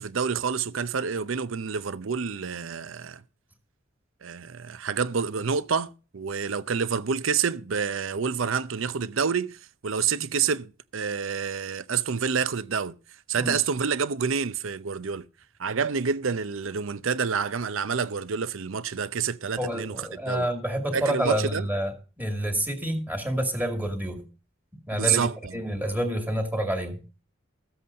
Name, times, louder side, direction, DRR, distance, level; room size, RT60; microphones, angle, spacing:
voice 1, 0.0-3.2 4.2-12.9 13.3-15.2 15.6-20.5 20.9-21.7 24.9-25.6, right 6 dB, 75° right, 0.6 m, -28 dB
voice 2, 19.6-24.3 24.9-27.0, equal, 10° right, 2.2 m, -28 dB
14.5 x 7.9 x 5.4 m
head